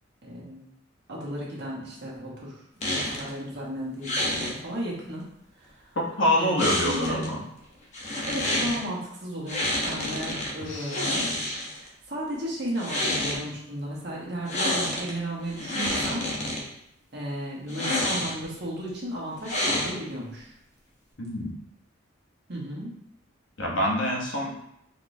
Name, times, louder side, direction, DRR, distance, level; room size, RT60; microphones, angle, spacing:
voice 1, 0.2-0.7 1.1-2.6 2.9-5.2 5.6-5.8 6.4-7.2 8.3-11.3 11.7-16.3 17.1-20.5 22.5-22.9, equal, 60° right, -4 dB, 1.2 m, -34 dB
sound 1, 2.8-3.3 4.0-4.5 6.6-7.3 7.9-8.8 9.5-10.5 10.9-11.9 12.7-13.4 14.5-15.1 15.5-16.6 17.7-18.5 19.4-20.2, left 1 dB, 35° left, 0.8 m, -28 dB
voice 2, 5.9-7.4 10.6-11.1 21.2-21.6 23.6-24.5, left 1 dB, 70° left, -2 dB, 1.0 m, -26 dB
4.1 x 3.2 x 2.7 m, 0.75 s
head